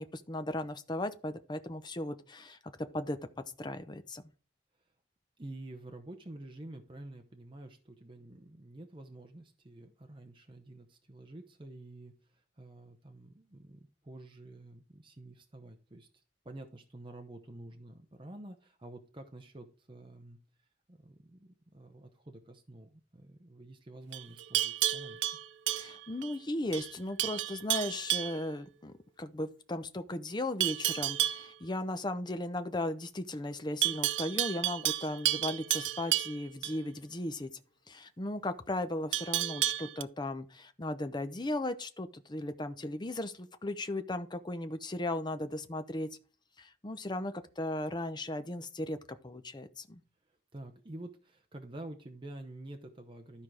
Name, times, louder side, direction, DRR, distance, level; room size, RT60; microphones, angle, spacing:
voice 1, 0.0-3.2 3.6-4.2 25.7-37.5 37.9-46.1 46.6-50.0, left 1 dB, 25° left, 0.7 m, -36 dB
voice 2, 5.4-12.1 12.6-16.1 16.4-20.4 20.9-25.3 50.5-53.4, right 1 dB, 30° right, 0.8 m, -49 dB
Livestock farm animals working animals, 24.1-26.4 26.7-26.9 27.2-28.4 30.6-31.5 33.8-36.8 39.1-40.0, right 14 dB, 85° right, 0.4 m, -31 dB
12.5 x 4.5 x 4.9 m
head